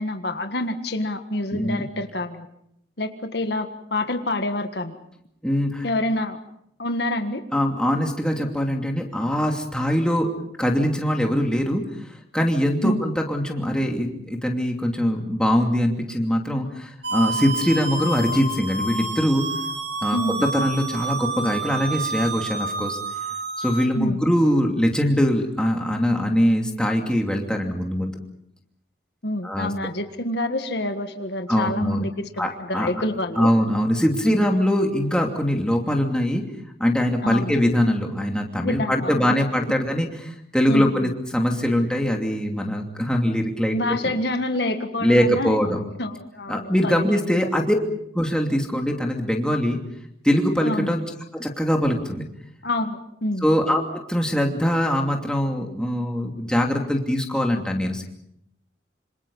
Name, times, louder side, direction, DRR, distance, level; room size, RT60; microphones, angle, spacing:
voice 1, 0.0-2.5 3.0-5.0 5.8-6.4 6.8-7.4 12.8-13.0 20.1-20.5 24.0-24.2 29.2-33.5 34.2-34.4 37.2-37.5 38.6-39.3 40.7-41.1 43.7-47.5 50.6-50.9 52.6-53.5, left 1 dB, 60° left, 7 dB, 1.7 m, -27 dB
voice 2, 1.5-1.8 5.4-5.9 7.5-10.3 10.6-11.8 12.3-19.4 20.0-20.2 20.5-23.0 23.6-28.1 29.4-29.7 31.5-32.1 32.4-32.9 33.4-36.4 36.8-44.1 45.0-45.8 46.5-47.8 48.1-49.8 50.2-51.0 51.3-52.3 53.4-58.0, equal, 5° left, 1 dB, 2.8 m, -22 dB
sound 1, 17.0-23.9, right 3 dB, 65° right, 3.1 m, -29 dB
26.5 x 26.5 x 5.6 m, 0.75 s
head